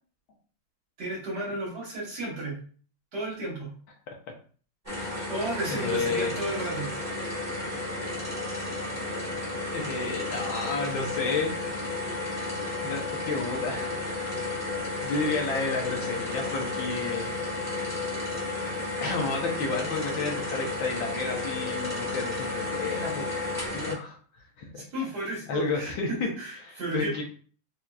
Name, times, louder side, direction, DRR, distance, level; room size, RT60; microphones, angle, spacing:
voice 1, 1.0-2.6 3.1-3.7 5.3-6.9 24.9-27.2, right 1 dB, 55° right, -4 dB, 1.7 m, -33 dB
sound 1, 4.8-23.9, left 2 dB, 10° right, 1.4 m, -32 dB
voice 2, 5.7-6.4 9.7-11.5 12.8-14.0 15.0-17.3 19.0-23.2 23.7-24.2 24.6-24.8 25.5-26.3 26.6-27.2, left 4 dB, 70° left, 0 dB, 1.4 m, -31 dB
4.5 x 2.7 x 2.3 m, 0.42 s
omnidirectional pair, 2.4 m